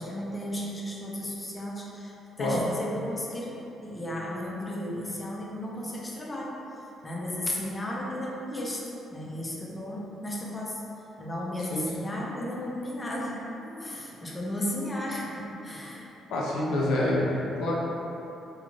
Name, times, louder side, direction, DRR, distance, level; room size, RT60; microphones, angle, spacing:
voice 1, 0.0-6.6 7.0-8.8 9.1-10.8 11.2-16.1, left 1 dB, 20° left, -4 dB, 0.5 m, -34 dB
voice 2, 16.3-17.7, left 1 dB, 80° left, -4 dB, 0.4 m, -27 dB
2.5 x 2.4 x 3.0 m, 3.0 s
cardioid pair, 90°, 0 cm